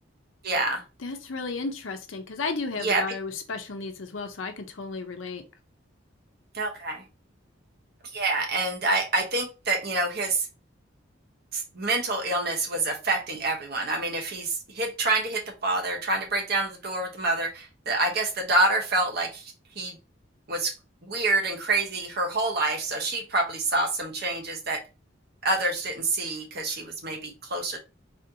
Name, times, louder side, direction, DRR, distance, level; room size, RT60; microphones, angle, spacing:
voice 1, 0.4-0.8 2.8-3.0 6.5-7.0 8.1-10.5 11.5-20.0 20.5-20.7 21.1-24.8 25.4-27.8, right 2 dB, 55° right, 2 dB, 1.0 m, -27 dB
voice 2, 1.0-5.4, left 4 dB, 90° left, 6 dB, 0.7 m, -33 dB
4.2 x 2.7 x 2.8 m, 0.28 s
head